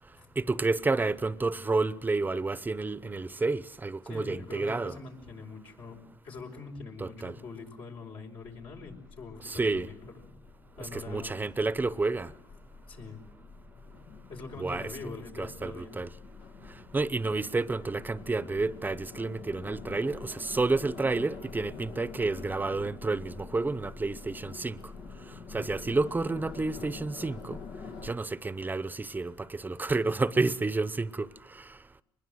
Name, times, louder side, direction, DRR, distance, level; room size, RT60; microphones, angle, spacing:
voice 1, 0.4-5.0 7.0-7.4 9.4-9.9 10.8-12.3 14.6-14.9 15.4-16.1 16.9-24.8 25.5-27.6 28.0-31.7, right 3 dB, 20° right, 0.8 m, -30 dB
voice 2, 4.0-10.3 10.7-11.4 12.9-13.2 14.3-16.0, left 4 dB, 70° left, 5.1 m, -43 dB
sound 1, 8.4-28.1, left 4 dB, 85° left, 1.8 m, -46 dB
24.0 x 21.0 x 7.8 m
cardioid pair, 80°, 9 cm